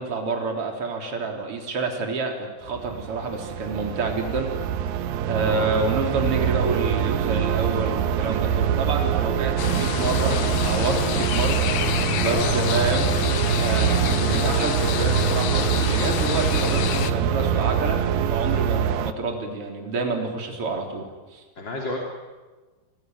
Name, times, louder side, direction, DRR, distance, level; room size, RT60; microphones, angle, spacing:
voice 1, 0.0-4.5 5.3-13.1 13.6-21.4, right 3 dB, 35° right, 2 dB, 4.2 m, -28 dB
sound 1, 2.6-19.1, right 9 dB, 70° right, 2.5 m, -24 dB
sound 2, 9.6-17.1, left 11 dB, 85° left, 3.1 m, -27 dB
voice 2, 12.2-12.8 21.6-22.0, left 2 dB, 30° left, 0 dB, 3.0 m, -30 dB
29.0 x 21.5 x 9.4 m, 1.3 s
omnidirectional pair, 4.7 m